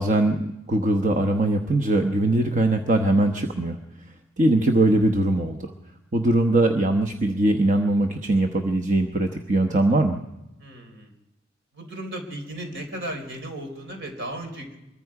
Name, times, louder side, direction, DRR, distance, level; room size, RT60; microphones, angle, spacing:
voice 1, 0.0-3.8 4.4-5.7 6.1-10.2, right 2 dB, 40° right, 4 dB, 1.0 m, -21 dB
voice 2, 10.6-11.1 11.7-14.8, right 1 dB, 65° right, 4 dB, 4.1 m, -35 dB
24.5 x 22.0 x 4.9 m, 0.94 s
head